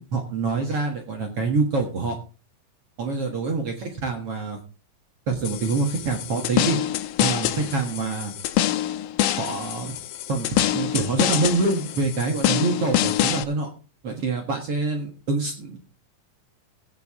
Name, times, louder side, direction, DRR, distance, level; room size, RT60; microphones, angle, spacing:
voice 1, 0.0-2.2 3.0-4.6 5.3-6.8 7.2-8.3 9.4-9.9 10.3-10.5 10.7-13.7 14.0-15.8, right 3 dB, 50° right, 2 dB, 2.2 m, -26 dB
sound 1, 5.4-13.4, left 12 dB, 75° left, 2.0 m, -25 dB
15.0 x 9.3 x 3.7 m, 0.35 s
omnidirectional pair, 4.0 m